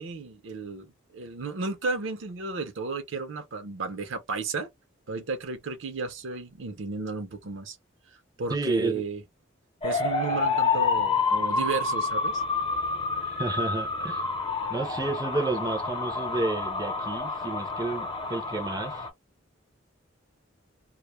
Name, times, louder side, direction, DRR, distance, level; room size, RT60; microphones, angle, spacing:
voice 1, 0.0-4.7 5.1-7.8 8.4-9.2 9.8-12.4, right 4 dB, 70° right, 0.6 m, -33 dB
voice 2, 8.5-9.0 13.3-14.2 14.7-19.1, right 3 dB, 20° right, 0.4 m, -31 dB
sound 1, 9.8-19.1, left 4 dB, 25° left, 0.6 m, -28 dB
2.2 x 2.0 x 2.9 m
head